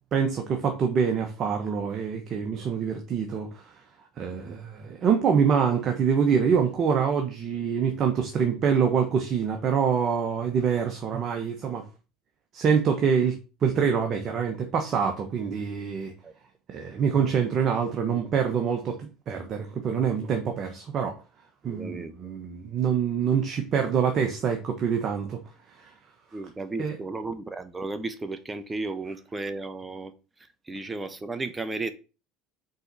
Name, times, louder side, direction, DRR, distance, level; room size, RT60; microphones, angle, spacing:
voice 1, 0.1-3.7 4.2-11.8 12.5-16.1 16.7-21.2 21.6-25.4 25.8-25.9 26.8-27.0, right 7 dB, 45° right, 1.2 m, -25 dB
voice 2, 21.6-22.1 26.3-30.1 30.7-31.9, right 3 dB, 20° right, 1.0 m, -34 dB
5.4 x 4.0 x 6.0 m
hypercardioid pair, 90°, 0 cm